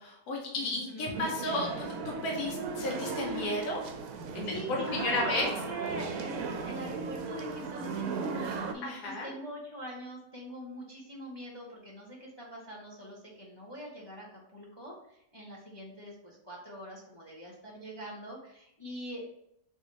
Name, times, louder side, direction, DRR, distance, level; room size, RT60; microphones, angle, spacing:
voice 1, 0.0-3.8 4.3-5.5 8.8-9.3, left 2 dB, 70° left, -1 dB, 1.5 m, -33 dB
voice 2, 0.5-1.2 3.2-3.8 4.4-14.3 14.5-19.3, equal, 20° left, -3 dB, 0.7 m, -43 dB
sound 1, 1.1-8.7, right 4 dB, 70° right, 1.0 m, -36 dB
3.7 x 3.4 x 4.0 m, 0.77 s
omnidirectional pair, 1.7 m